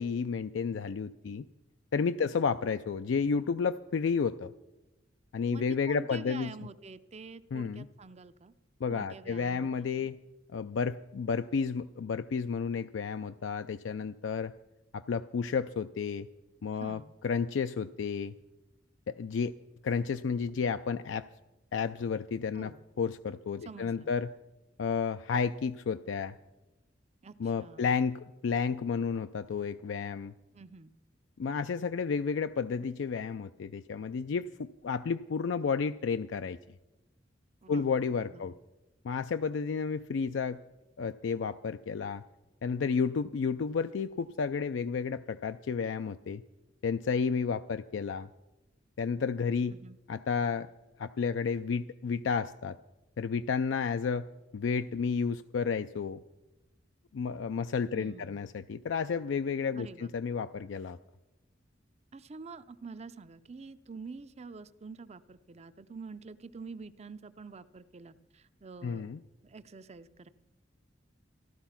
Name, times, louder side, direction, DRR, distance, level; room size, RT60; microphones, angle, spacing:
voice 1, 0.0-1.4 1.9-4.5 5.3-6.5 7.5-7.9 8.8-10.2 10.5-14.5 14.9-16.3 16.6-18.3 19.1-19.5 19.8-21.3 21.7-22.7 23.0-24.3 24.8-26.3 27.4-30.3 31.4-36.6 37.7-38.5 39.0-40.6 41.0-42.2 42.6-46.4 46.8-48.3 49.0-49.7 50.1-50.7 51.0-52.8 53.2-54.3 54.5-56.2 57.1-61.0 68.8-69.2, left 5 dB, 70° left, 10 dB, 0.4 m, -31 dB
voice 2, 5.5-8.5 8.9-9.7 9.9-10.1 16.7-17.1 22.5-22.8 23.6-24.1 27.2-28.0 30.5-30.9 37.6-37.9 38.3-38.6 49.7-50.0 57.9-58.4 59.7-60.1 62.1-69.1 69.4-70.3, right 4 dB, 35° right, 14 dB, 0.5 m, -47 dB
15.0 x 12.5 x 5.8 m, 1.0 s
head